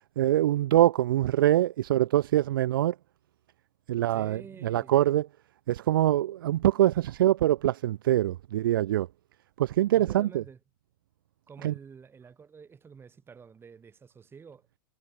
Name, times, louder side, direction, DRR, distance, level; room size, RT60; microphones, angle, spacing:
voice 1, 0.2-2.9 3.9-5.3 5.7-9.1 9.6-10.4 11.6-11.7, right 13 dB, 80° right, 0.8 m, -24 dB
voice 2, 4.1-5.1 9.9-10.6 11.5-14.7, right 6 dB, 20° right, 5.2 m, -49 dB
hypercardioid pair, 110°, 11 cm